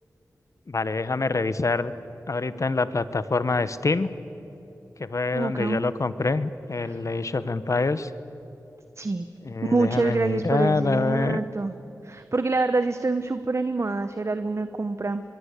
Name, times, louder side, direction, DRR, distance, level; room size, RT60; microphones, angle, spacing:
voice 1, 0.7-1.9 2.3-4.1 5.0-8.1 9.4-11.4, left 3 dB, 50° left, 14 dB, 1.1 m, -25 dB
voice 2, 5.3-5.8 6.8-7.0 9.0-9.3 9.6-11.7 12.0-15.2, right 3 dB, 45° right, 10 dB, 1.0 m, -26 dB
25.0 x 22.5 x 8.3 m, 2.9 s
wide cardioid pair, 55°, 7 cm